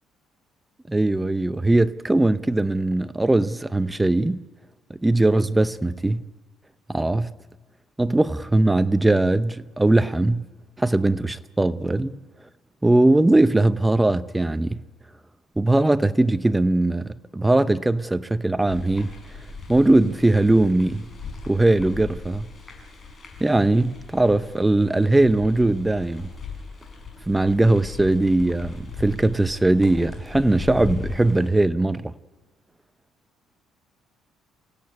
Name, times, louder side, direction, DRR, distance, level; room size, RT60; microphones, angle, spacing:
voice 1, 0.9-4.4 4.9-6.2 6.9-7.3 8.0-10.5 10.8-12.2 12.8-14.8 15.6-19.1 19.7-21.1 21.5-22.5 23.4-26.3 27.3-32.1, right 2 dB, 10° right, 0.7 m, -20 dB
sound 1, 18.7-31.5, left 4 dB, 25° left, 6.2 m, -38 dB
28.5 x 16.0 x 9.5 m
cardioid pair, 135°, 0 cm